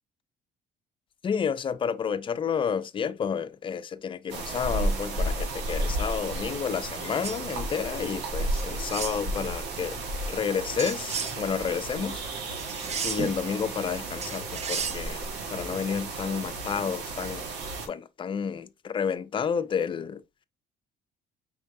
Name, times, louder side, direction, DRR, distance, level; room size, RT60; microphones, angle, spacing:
voice 1, 1.2-10.0 10.3-12.2 12.5-12.6 13.0-15.2 15.5-17.5 17.9-20.2, left 7 dB, 30° left, 0.4 m, -30 dB
sound 1, 4.3-17.9, right 2 dB, 85° right, 1.4 m, -33 dB
sound 2, 7.2-7.4 8.5-9.2 10.8-11.4 12.6-13.4 14.2-15.0, right 6 dB, 40° right, 0.7 m, -33 dB
5.3 x 3.5 x 2.6 m
cardioid pair, 110°, 17 cm